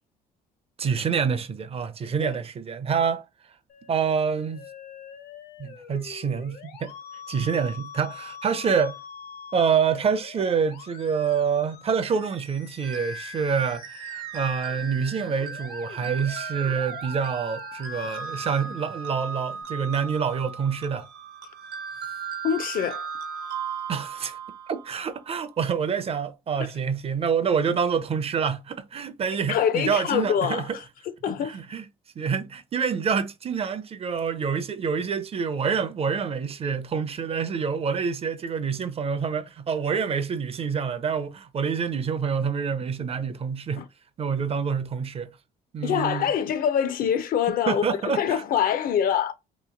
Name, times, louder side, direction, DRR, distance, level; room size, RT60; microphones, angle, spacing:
voice 1, 0.8-3.2 3.9-4.6 5.6-6.9 7.3-9.0 9.5-21.1 23.9-24.4 24.7-30.8 31.4-31.9 32.2-43.8 44.2-45.3 45.7-46.3 47.7-48.4, right 6 dB, 35° right, 0.5 m, -27 dB
Musical instrument, 3.7-19.6, left 7 dB, 75° left, 0.9 m, -45 dB
sound 1, 12.8-25.2, right 5 dB, 80° right, 1.0 m, -36 dB
voice 2, 22.4-23.1 29.5-31.6 43.8-43.9 45.8-49.3, left 8 dB, 55° left, 0.6 m, -25 dB
3.0 x 2.7 x 3.8 m
cardioid pair, 110°, 17 cm